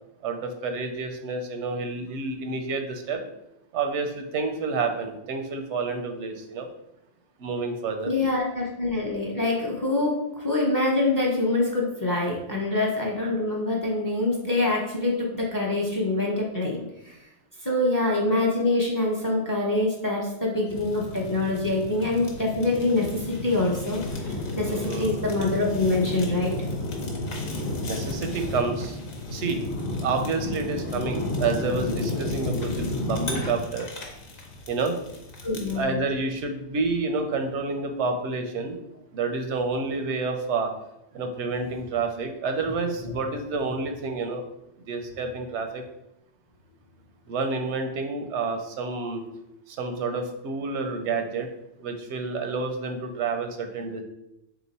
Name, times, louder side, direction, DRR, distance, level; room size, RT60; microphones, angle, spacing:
voice 1, 0.2-3.2 3.7-6.7 7.4-8.1 24.7-25.2 27.9-29.0 29.3-29.6 29.9-33.9 34.7-35.0 35.8-38.8 39.1-40.7 41.1-44.4 44.9-45.8 47.3-49.2 49.7-51.5 51.8-54.0, right 4 dB, 85° right, 5 dB, 0.9 m, -29 dB
voice 2, 8.1-17.2 17.6-24.0 24.6-26.5 35.4-36.0 43.0-43.1, left 2 dB, 20° left, -2 dB, 0.6 m, -25 dB
Fire, 20.7-35.8, left 2 dB, 55° left, 0.9 m, -32 dB
3.6 x 2.9 x 4.0 m, 0.87 s
omnidirectional pair, 1.2 m